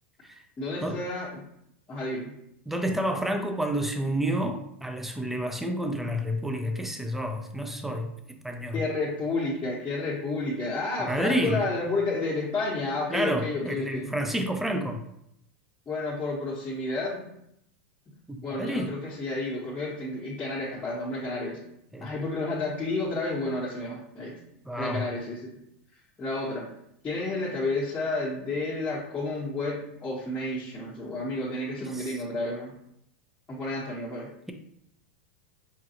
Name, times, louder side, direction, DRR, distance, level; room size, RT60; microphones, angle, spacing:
voice 1, 0.6-1.4 1.9-2.3 8.7-14.1 15.9-17.2 18.1-18.2 18.4-21.6 22.0-24.3 24.8-25.5 26.2-26.7 27.0-32.7 33.5-34.3, left 2 dB, 20° left, 0.9 m, -31 dB
voice 2, 2.7-8.1 8.4-8.8 11.0-11.6 13.1-15.0 18.3-18.9 21.9-22.1 24.7-25.1 31.8-32.2, equal, 5° right, 0.4 m, -29 dB
5.0 x 2.3 x 2.8 m
hypercardioid pair, 110°, 7 cm